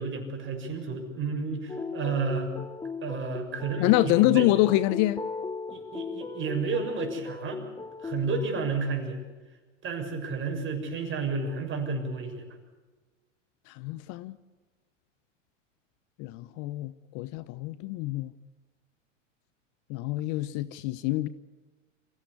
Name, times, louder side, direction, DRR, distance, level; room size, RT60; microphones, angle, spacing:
voice 1, 0.0-2.5 3.0-4.5 5.7-7.6 8.0-9.2 9.8-12.4, right 4 dB, 30° right, 6.6 m, -31 dB
sound 1, 1.7-8.7, left 4 dB, 10° left, 1.3 m, -37 dB
voice 2, 3.8-5.2 13.7-14.4 16.2-18.3 19.9-21.3, left 17 dB, 50° left, 1.0 m, -26 dB
27.0 x 16.0 x 8.3 m
hypercardioid pair, 105°, 38 cm